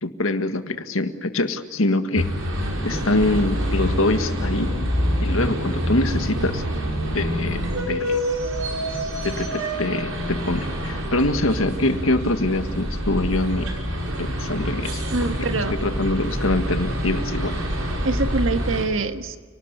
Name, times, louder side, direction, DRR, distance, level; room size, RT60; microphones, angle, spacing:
voice 1, 0.0-2.3 2.8-4.7 5.2-6.6 7.1-8.2 9.2-13.7 14.2-15.3 15.7-17.6, left 2 dB, 80° left, 8 dB, 1.8 m, -24 dB
sound 1, 2.1-18.8, equal, 90° right, 6.2 m, -26 dB
voice 2, 15.1-15.8 18.0-19.4, right 3 dB, 70° right, 8 dB, 1.7 m, -24 dB
29.5 x 19.0 x 8.2 m, 1.5 s
head